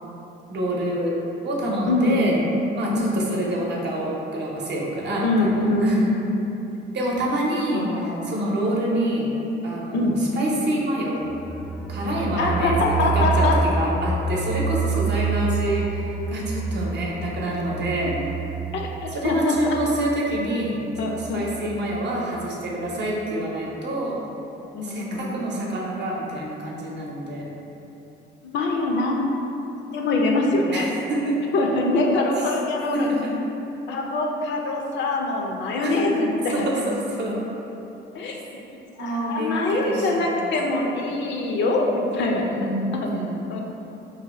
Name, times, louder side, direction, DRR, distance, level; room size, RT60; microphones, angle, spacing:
voice 1, 0.5-2.4 2.8-6.0 6.9-9.3 9.6-11.2 11.9-12.7 13.1-18.1 19.1-24.2 24.8-27.5 30.7-31.4 32.9-33.3 35.8-36.0 36.5-37.4 39.0-40.5 42.5-43.4, right 1 dB, 60° right, -3 dB, 0.7 m, -27 dB
voice 2, 1.9-2.5 3.3-3.4 5.2-6.2 7.2-7.3 7.7-8.3 9.9-10.2 12.4-13.6 18.7-19.8 21.0-21.4 24.7-25.7 28.4-29.2 29.9-30.9 31.5-33.1 33.9-36.7 38.1-38.4 38.7-42.7 43.5-43.6, left 2 dB, 65° left, 0 dB, 0.5 m, -24 dB
sound 1, 11.2-21.9 22.2-22.3 22.7-22.8, right 5 dB, 10° left, 0.4 m, -28 dB
2.7 x 2.2 x 4.1 m, 3.0 s
cardioid pair, 90°, 20 cm